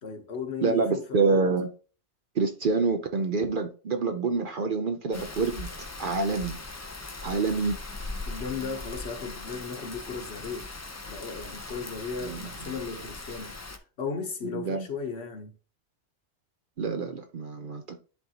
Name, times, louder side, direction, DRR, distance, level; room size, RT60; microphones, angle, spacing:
voice 1, 0.0-1.4 8.3-10.7 11.1-13.6 14.0-15.5, left 5 dB, 60° left, 1.2 m, -36 dB
voice 2, 0.6-1.7 2.4-5.7 6.0-6.6 7.2-7.8 12.2-12.4 14.4-14.9 16.8-18.0, right 4 dB, 55° right, 0.7 m, -27 dB
Rain, 5.1-13.8, left 2 dB, 25° left, 0.3 m, -40 dB
10.5 x 3.9 x 2.8 m
omnidirectional pair, 1.2 m